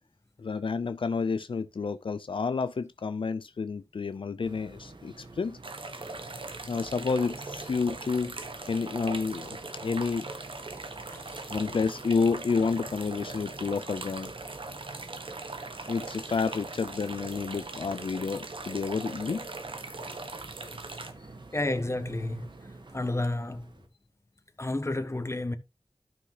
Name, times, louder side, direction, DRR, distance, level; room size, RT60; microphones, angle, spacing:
voice 1, 0.4-5.6 6.7-8.3 8.7-10.3 11.5-14.3 15.9-19.5, left 4 dB, 85° left, 0.5 m, -30 dB
sound 1, 4.4-23.9, right 2 dB, 65° right, 1.5 m, -49 dB
sound 2, 5.6-21.1, right 3 dB, 85° right, 1.3 m, -40 dB
voice 2, 21.5-22.5 22.9-23.7 24.6-25.6, left 2 dB, 30° left, 1.3 m, -30 dB
13.0 x 5.9 x 2.9 m
wide cardioid pair, 45°, 9 cm